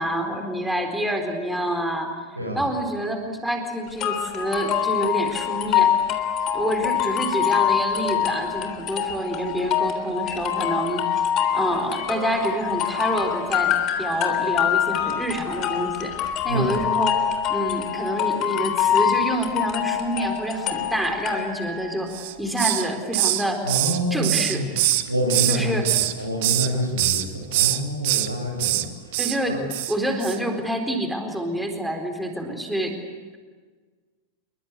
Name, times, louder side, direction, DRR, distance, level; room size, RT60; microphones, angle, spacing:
voice 1, 0.0-2.1 2.6-6.0 6.5-11.3 11.5-17.2 17.5-23.6 24.1-24.7 25.4-25.9 29.2-29.6 29.9-33.0, right 1 dB, 5° right, 4 dB, 4.2 m, -27 dB
sound 1, 4.0-21.9, left 10 dB, 35° left, 3.4 m, -25 dB
voice 2, 16.5-16.8 23.6-24.7 25.1-29.2 29.5-29.6, equal, 85° right, 2 dB, 7.5 m, -27 dB
Hiss, 22.1-22.9 23.1-25.6 25.8-26.7 27.0-27.2 27.5-28.3 28.6-28.8 29.1-29.4 29.7-29.9 30.2-30.4, right 17 dB, 50° right, 1.6 m, -23 dB
28.5 x 23.5 x 8.5 m, 1.5 s
figure-of-eight pair, 90°, 0 cm